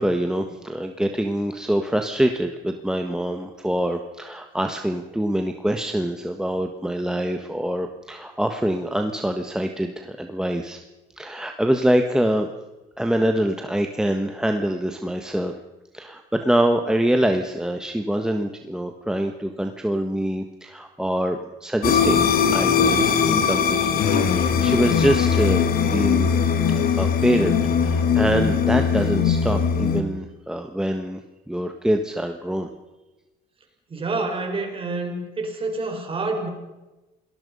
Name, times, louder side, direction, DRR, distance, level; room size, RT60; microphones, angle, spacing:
voice 1, 0.0-10.8 11.2-12.5 13.0-15.6 15.9-26.3 27.0-31.2 31.5-32.7, right 1 dB, 5° right, 5 dB, 1.4 m, -25 dB
sound 1, 21.8-30.0, left 7 dB, 65° left, 2.5 m, -20 dB
voice 2, 33.9-36.5, right 3 dB, 30° right, 3 dB, 5.3 m, -28 dB
28.0 x 19.0 x 5.5 m, 1.1 s
cardioid pair, 110°, 17 cm